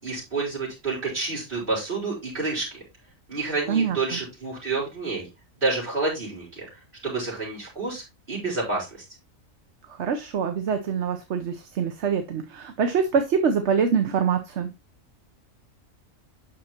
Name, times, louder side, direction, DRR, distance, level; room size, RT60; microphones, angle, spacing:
voice 1, 0.0-2.8 3.3-5.3 5.6-6.7 7.0-9.0, right 3 dB, 40° right, -6 dB, 4.4 m, -29 dB
voice 2, 3.7-4.2 9.9-14.7, right 6 dB, 60° right, 6 dB, 1.1 m, -25 dB
8.7 x 6.2 x 2.9 m, 0.25 s
omnidirectional pair, 1.4 m